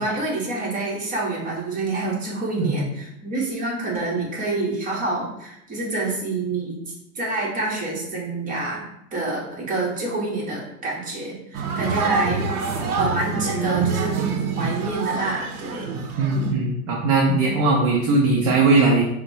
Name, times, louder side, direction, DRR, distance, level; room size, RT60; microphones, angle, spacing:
voice 1, 0.0-6.8 7.1-12.4 13.0-16.0, right 2 dB, 20° right, -4 dB, 1.1 m, -27 dB
sound 1, 11.5-16.5, right 5 dB, 80° right, 0.7 m, -26 dB
voice 2, 16.2-19.0, right 3 dB, 35° right, -1 dB, 0.5 m, -19 dB
4.0 x 2.1 x 2.7 m, 0.81 s
hypercardioid pair, 110°, 44 cm